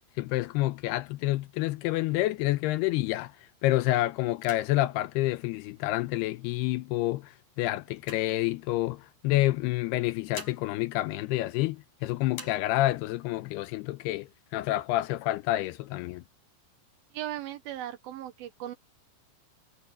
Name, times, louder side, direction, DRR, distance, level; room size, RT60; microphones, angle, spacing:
voice 1, 0.2-3.3 3.6-16.2, left 17 dB, 85° left, 2.5 m, -28 dB
sound 1, 1.5-3.3 3.7-4.0 4.3-6.2 6.9-9.0 9.9-12.0 12.3-13.2 13.6-13.7 14.0-14.6 15.1-16.0, left 3 dB, 45° left, 8.3 m, -50 dB
voice 2, 17.1-18.8, right 13 dB, 75° right, 2.4 m, -37 dB
omnidirectional pair, 4.9 m